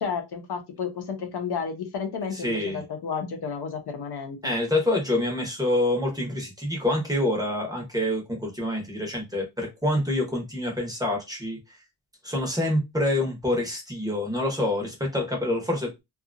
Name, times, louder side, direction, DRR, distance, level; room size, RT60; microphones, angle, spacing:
voice 1, 0.0-4.5, left 6 dB, 60° left, 0.7 m, -32 dB
voice 2, 2.3-2.8 4.4-11.8 12.2-16.0, left 1 dB, 10° right, 0.8 m, -26 dB
2.7 x 2.4 x 2.5 m
wide cardioid pair, 140°, 45 cm